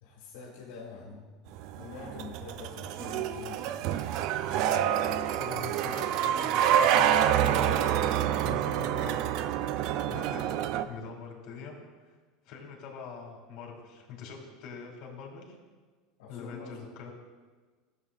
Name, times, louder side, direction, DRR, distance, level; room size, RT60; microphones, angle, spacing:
voice 1, 0.0-1.3 1.8-3.6 16.2-16.9, left 4 dB, 80° left, -2 dB, 1.4 m, -45 dB
sound 1, 1.6-10.9, right 10 dB, 55° right, 0.3 m, -27 dB
voice 2, 5.3-8.1 8.4-9.5 10.1-11.7 12.4-15.6 16.3-17.1, left 5 dB, 50° left, -1 dB, 2.3 m, -43 dB
12.5 x 7.1 x 2.4 m, 1.4 s
supercardioid pair, 140°, 0 cm